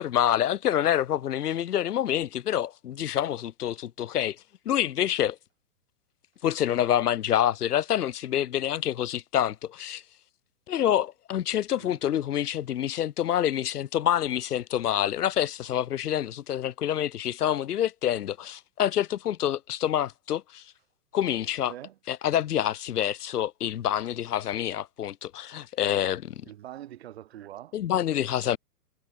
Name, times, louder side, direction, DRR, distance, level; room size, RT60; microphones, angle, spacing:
voice 1, 0.0-4.4 4.6-5.4 6.4-10.0 10.7-20.6 21.1-21.7 22.1-26.3 27.7-28.6, left 11 dB, 70° left, 1.5 m, -27 dB
voice 2, 21.7-22.0 26.4-27.7 28.4-28.6, right 12 dB, 40° right, 1.1 m, -44 dB
hypercardioid pair, 175°, 48 cm